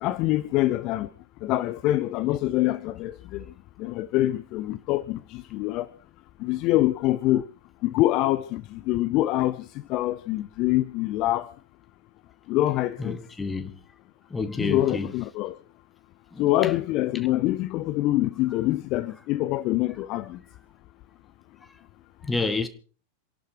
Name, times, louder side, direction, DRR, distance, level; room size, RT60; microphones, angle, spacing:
voice 1, 0.0-1.1 1.4-3.4 3.8-5.9 6.4-7.5 7.8-9.6 9.9-11.5 12.5-13.2 14.6-15.5 16.4-20.4, left 16 dB, 40° left, 0.7 m, -25 dB
voice 2, 13.0-13.7 14.3-15.1 16.3-16.7 22.2-22.7, left 3 dB, 10° left, 1.7 m, -29 dB
27.0 x 11.5 x 4.6 m
figure-of-eight pair, 90°, 0 cm